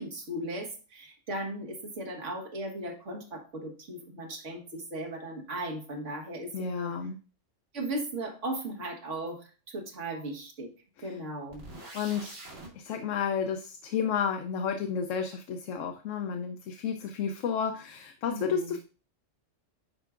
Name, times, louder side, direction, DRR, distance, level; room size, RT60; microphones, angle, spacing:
voice 1, 0.0-6.9 7.7-10.7 11.0-11.7 18.3-18.8, right 1 dB, 70° right, 0 dB, 1.8 m, -37 dB
voice 2, 6.5-7.2 11.9-12.4 12.8-18.8, left 7 dB, 80° left, 6 dB, 1.0 m, -31 dB
sound 1, 11.5-12.7, right 2 dB, 90° right, 2.5 m, -44 dB
10.0 x 4.6 x 2.4 m, 0.37 s
omnidirectional pair, 1.3 m